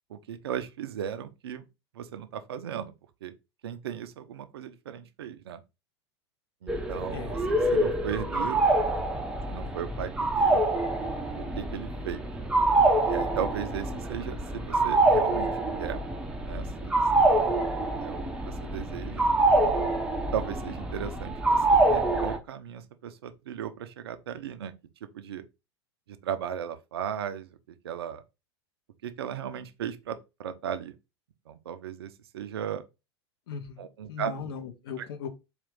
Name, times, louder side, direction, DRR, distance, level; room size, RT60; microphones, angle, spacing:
voice 1, 0.1-1.6 1.9-2.9 3.2-3.3 3.6-5.6 6.6-8.6 9.5-10.6 11.3-12.2 13.1-16.0 16.4-17.4 18.0-19.2 20.3-24.7 25.0-25.4 26.1-27.6 27.8-28.2 29.0-30.9 31.5-32.9 33.8-34.3 35.0-35.1, right 9 dB, 65° right, 0.5 m, -36 dB
sound 1, 6.7-22.4, right 2 dB, 5° right, 0.6 m, -26 dB
voice 2, 33.5-35.3, left 6 dB, 60° left, 0.8 m, -38 dB
4.3 x 2.4 x 3.7 m
figure-of-eight pair, 90°, 14 cm